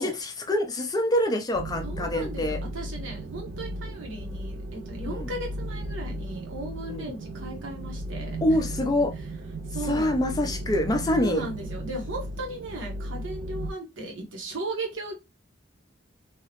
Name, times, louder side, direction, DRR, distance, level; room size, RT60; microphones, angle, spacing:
voice 1, 0.0-2.6 5.1-5.3 6.9-7.1 8.4-9.1 9.9-11.4, left 1 dB, 20° left, 0.4 m, -25 dB
Drone Sound, 1.5-13.7, right 1 dB, 55° right, 0.3 m, -35 dB
voice 2, 1.8-8.6 9.7-10.1 11.1-15.2, right 2 dB, 80° right, 0.9 m, -36 dB
2.8 x 2.1 x 2.8 m
head